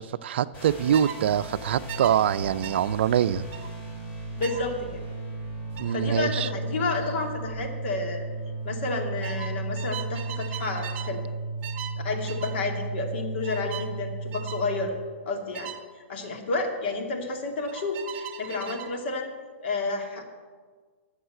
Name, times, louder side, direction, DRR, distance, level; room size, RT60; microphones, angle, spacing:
voice 1, 0.0-3.4 5.8-6.5, right 9 dB, 60° right, 15 dB, 0.5 m, -24 dB
sound 1, 0.5-14.9, right 3 dB, 35° left, 3.2 m, -35 dB
sound 2, 0.9-1.2 1.9-2.1 2.6-2.8 3.5-3.7 4.4-4.6 5.7-6.0 7.4-7.7 7.9-8.3 9.2-11.1 11.6-12.0 12.3-12.6 13.4-13.9 14.3-14.6 15.5-15.8 17.7-18.9, right 10 dB, 30° right, 1.4 m, -39 dB
voice 2, 4.4-5.0 5.9-8.3 8.6-11.2 12.0-14.9 15.3-15.7 16.0-19.3 19.6-20.2, left 3 dB, 55° left, 2 dB, 2.4 m, -30 dB
13.0 x 6.7 x 7.7 m, 1.5 s
hypercardioid pair, 125°, 7 cm